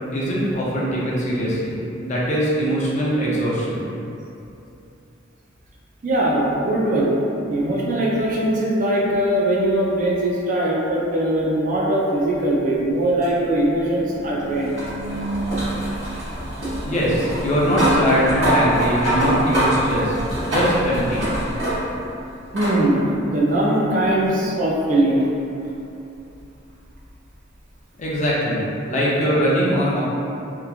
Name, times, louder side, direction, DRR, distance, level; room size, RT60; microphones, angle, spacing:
voice 1, 0.1-3.8 16.8-21.2 28.0-30.0, equal, 40° left, -6 dB, 0.5 m, -22 dB
voice 2, 6.0-7.2 7.5-14.7 22.5-23.0 23.3-25.3, right 1 dB, 40° right, -4 dB, 0.4 m, -20 dB
sound 1, 13.2-22.1 22.6-22.8 24.1-24.2 27.1-27.2, right 1 dB, 80° right, 1.1 m, -24 dB
2.9 x 2.3 x 2.4 m, 2.7 s
head